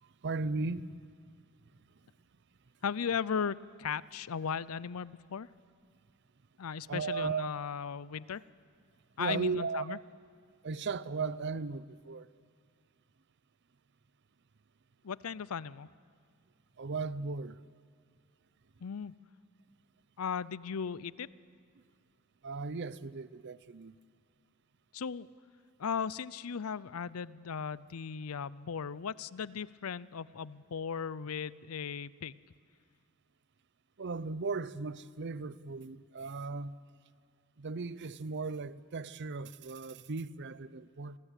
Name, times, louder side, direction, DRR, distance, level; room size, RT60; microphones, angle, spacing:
voice 1, 0.0-1.1 6.9-7.5 9.2-10.0 10.6-12.3 16.8-17.6 22.4-23.9 34.0-36.8 37.6-41.2, right 4 dB, 55° right, 0.6 m, -37 dB
voice 2, 2.8-5.5 6.6-8.4 9.2-10.0 15.0-15.9 18.8-19.1 20.2-21.3 24.9-25.3 25.8-32.4, left 6 dB, 75° left, 0.5 m, -37 dB
27.0 x 19.5 x 8.3 m
head